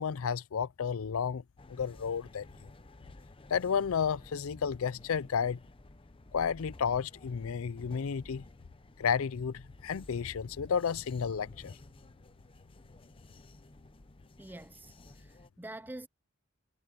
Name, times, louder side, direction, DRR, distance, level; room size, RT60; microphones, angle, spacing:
voice 1, 0.0-1.4 1.7-2.5 3.5-5.6 6.3-8.4 9.0-11.7, left 6 dB, 75° left, 0.5 m, -32 dB
sound 1, 1.6-15.5, left 2 dB, 25° left, 0.7 m, -54 dB
voice 2, 14.4-16.1, right 1 dB, 10° right, 0.6 m, -46 dB
head